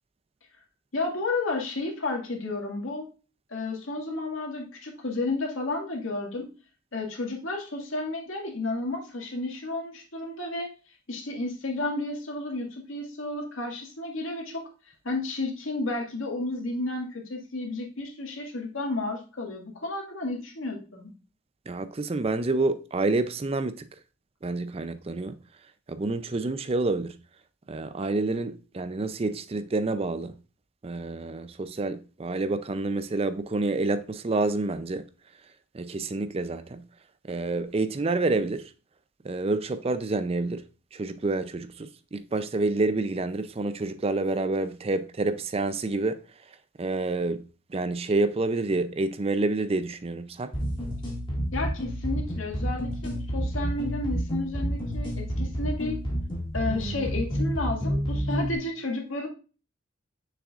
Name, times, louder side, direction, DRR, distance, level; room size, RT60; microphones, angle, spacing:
voice 1, 0.9-3.1 3.5-6.5 6.9-10.7 11.1-21.1 51.5-56.0 56.5-59.3, left 2 dB, 90° left, 2.0 m, -32 dB
voice 2, 21.7-23.8 24.4-25.4 25.9-27.1 27.7-30.4 30.8-35.0 35.7-36.8 37.3-38.7 39.2-40.6 40.9-46.2 46.8-47.4 47.7-50.5, right 2 dB, 30° right, 0.4 m, -28 dB
sound 1, 50.5-58.6, equal, 25° left, 2.0 m, -29 dB
6.6 x 6.2 x 2.4 m
head